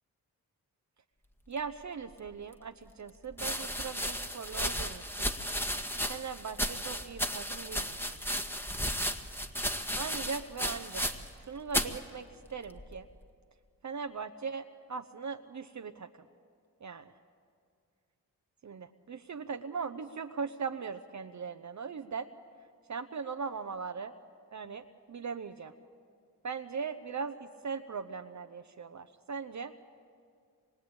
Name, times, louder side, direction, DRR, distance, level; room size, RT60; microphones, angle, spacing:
voice 1, 1.5-5.3 6.1-8.4 9.9-11.1 11.5-13.1 13.8-14.6 14.9-16.3 16.8-17.1 18.6-22.3 22.9-24.1 24.5-25.7 26.4-29.7, right 5 dB, 55° right, 7 dB, 1.0 m, -39 dB
sound 1, 2.3-2.4 3.3-11.4 11.7-12.0 12.8-13.2, equal, 5° left, 1.7 m, -34 dB
25.5 x 22.5 x 8.8 m, 2.2 s
cardioid pair, 60°, 35 cm